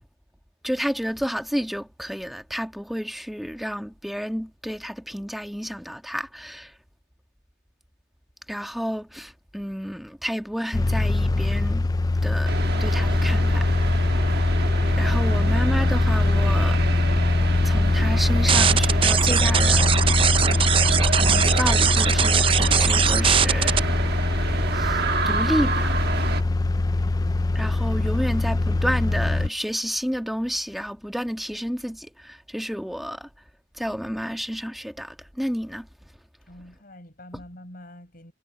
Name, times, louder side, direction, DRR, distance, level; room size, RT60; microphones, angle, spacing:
voice 1, 0.6-6.7 8.5-11.9 12.2-12.5 12.8-13.7 15.0-16.8 17.6-20.1 21.2-23.9 24.7-26.0 27.5-33.3 33.7-35.9, equal, ahead, 1.5 m, -30 dB
sound 1, 10.7-29.5, left 2 dB, 20° left, 0.4 m, -22 dB
sound 2, 12.5-26.4, right 3 dB, 60° right, 1.4 m, -29 dB
sound 3, 18.5-23.8, right 8 dB, 30° right, 0.5 m, -21 dB
voice 2, 36.5-38.3, left 1 dB, 50° left, 7.2 m, -46 dB
head